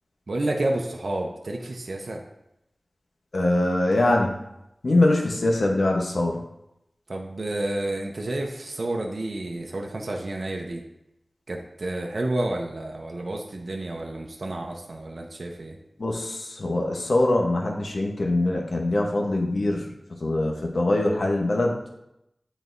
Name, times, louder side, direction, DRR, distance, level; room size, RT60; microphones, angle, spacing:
voice 1, 0.3-2.2 7.1-10.8 11.5-15.8, right 1 dB, 70° right, 1 dB, 0.7 m, -30 dB
voice 2, 3.3-4.4 4.8-6.4 16.0-19.9 20.2-21.8, left 2 dB, 75° left, 0 dB, 0.9 m, -23 dB
9.2 x 4.0 x 2.6 m, 0.85 s
wide cardioid pair, 55°, 0 cm